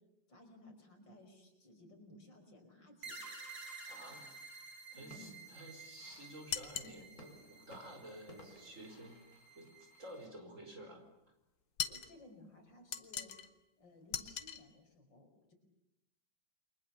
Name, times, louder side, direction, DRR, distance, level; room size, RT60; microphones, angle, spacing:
voice 1, 0.3-3.2 4.9-5.5 11.8-13.4 13.8-15.5, left 2 dB, 65° left, 4 dB, 5.8 m, -58 dB
sound 1, 3.0-10.3, right 4 dB, 75° right, 5.2 m, -53 dB
voice 2, 3.9-4.3 4.9-9.2 9.5-11.0, right 1 dB, 40° right, 4 dB, 5.1 m, -52 dB
sound 2, 4.8-11.3 11.7-12.4 12.7-13.3, left 1 dB, 50° left, 4.7 m, -61 dB
sound 3, 6.5-7.0 11.8-12.1 12.9-13.5 14.1-14.6, left 8 dB, 80° left, 2.1 m, -39 dB
29.5 x 23.5 x 7.2 m, 0.86 s
omnidirectional pair, 2.1 m